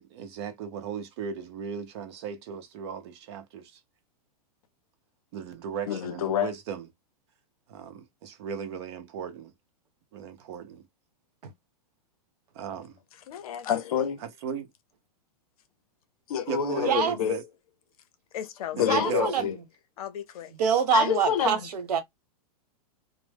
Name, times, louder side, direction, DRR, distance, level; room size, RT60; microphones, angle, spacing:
voice 1, 0.0-3.8 5.3-6.9 7.7-9.5 10.1-10.8 12.5-13.0 14.2-14.7 16.5-17.4 18.8-19.5, right 7 dB, 45° right, 0.6 m, -36 dB
voice 2, 5.9-6.5 13.3-14.2 16.3-17.4 18.3-19.6 20.0-20.5 20.9-21.7, left 9 dB, 65° left, 0.6 m, -28 dB
voice 3, 16.8-17.2 18.9-19.5 20.6-22.0, right 7 dB, 85° right, 0.9 m, -25 dB
2.1 x 2.0 x 3.2 m
supercardioid pair, 160°, 20 cm